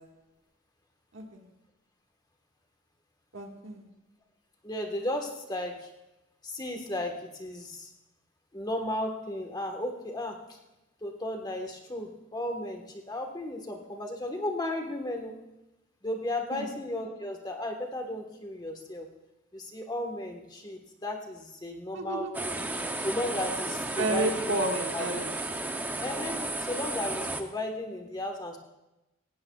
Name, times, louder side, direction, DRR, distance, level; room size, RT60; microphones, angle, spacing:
voice 1, 1.1-1.5 3.3-3.9 16.5-16.7 21.9-22.3 24.0-25.3, right 2 dB, 65° right, 2 dB, 1.7 m, -31 dB
voice 2, 4.6-5.9 6.4-7.9 8.5-10.6 11.0-15.3 16.0-19.1 19.5-22.5 23.0-24.6 24.9-25.0 26.0-28.6, left 1 dB, 20° left, 3 dB, 1.4 m, -34 dB
sound 1, 22.3-27.4, right 2 dB, 10° right, 0.6 m, -33 dB
17.5 x 16.5 x 2.4 m, 0.98 s
head